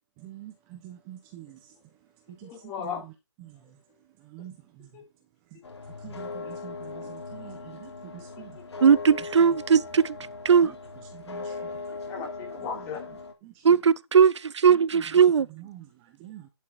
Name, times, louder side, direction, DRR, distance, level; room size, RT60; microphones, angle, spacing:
voice 1, 0.2-1.8 2.3-2.5 2.8-3.0 3.4-3.8 4.2-5.0 5.5-5.6 6.0-8.6 10.6-10.8 11.1-11.8 13.4-13.8 14.7-15.0 15.5-16.5, right 13 dB, 20° right, 1.2 m, -46 dB
voice 2, 2.4-3.1 3.6-3.7 4.9-5.0 6.4-6.5 8.2-8.3 8.5-8.6 11.9-13.2, left 7 dB, 20° left, 3.5 m, -37 dB
sound 1, 5.6-13.3, left 3 dB, 70° left, 3.4 m, -39 dB
voice 3, 8.8-10.2 10.4-10.7 13.6-15.5, right 6 dB, 80° right, 0.5 m, -19 dB
11.5 x 5.8 x 4.4 m
hypercardioid pair, 160°, 15 cm